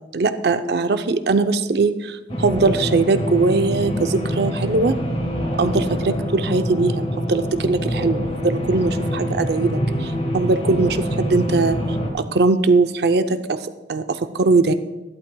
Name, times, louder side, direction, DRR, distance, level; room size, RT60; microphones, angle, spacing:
voice 1, 0.1-4.9 5.6-11.8 12.1-13.6 13.9-14.7, right 3 dB, 65° right, 9 dB, 0.6 m, -20 dB
sound 1, 2.3-12.1, equal, 35° left, 1.4 m, -25 dB
13.5 x 11.5 x 2.3 m, 1.1 s
head